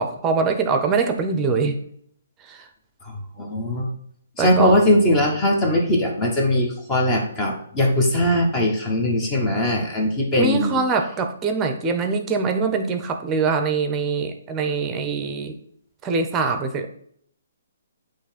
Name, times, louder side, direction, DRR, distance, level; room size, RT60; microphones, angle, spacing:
voice 1, 0.0-1.8 2.5-2.6 4.4-4.8 10.3-15.5 16.0-16.9, right 4 dB, 20° right, 6 dB, 0.8 m, -23 dB
voice 2, 3.4-3.9 4.4-10.8, left 1 dB, 20° left, 1 dB, 1.4 m, -20 dB
8.4 x 3.2 x 4.2 m, 0.66 s
hypercardioid pair, 140°, 0 cm